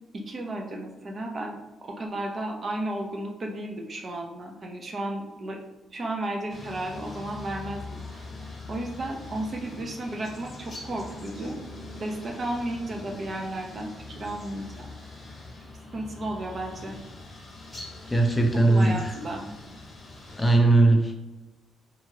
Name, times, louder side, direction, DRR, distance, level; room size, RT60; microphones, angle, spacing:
voice 1, 0.1-5.6 5.9-8.2 8.7-11.6 12.0-14.9 15.9-17.0 18.7-19.4, right 1 dB, 40° right, 1 dB, 0.6 m, -33 dB
sound 1, 6.5-20.6, left 2 dB, 30° left, 0.8 m, -43 dB
voice 2, 18.1-19.2 19.5-19.6 20.4-21.1, right 2 dB, 15° left, 3 dB, 0.4 m, -20 dB
2.8 x 2.3 x 2.9 m, 1.0 s
cardioid pair, 90°, 0 cm